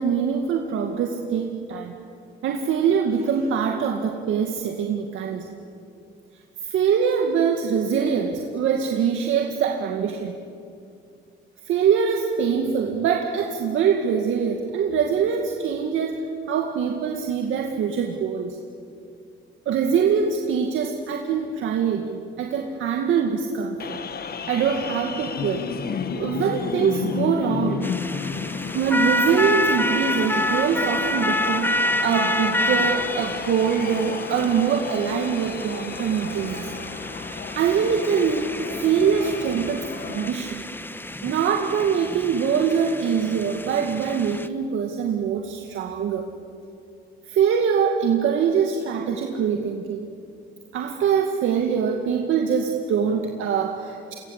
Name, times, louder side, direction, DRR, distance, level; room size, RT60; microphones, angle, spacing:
voice 1, 0.0-2.0 2.4-5.6 6.6-10.4 11.7-16.2 16.5-18.6 19.7-24.0 24.5-25.6 26.1-27.9 28.7-36.8 37.5-40.6 41.2-46.3 47.3-50.1 50.7-54.1, right 7 dB, 80° right, 2 dB, 2.2 m, -23 dB
sound 1, 23.8-40.3, left 6 dB, 50° left, 1.8 m, -33 dB
sound 2, 27.8-44.5, left 1 dB, 10° left, 1.4 m, -28 dB
29.0 x 24.0 x 8.3 m, 2.5 s
cardioid pair, 90°, 20 cm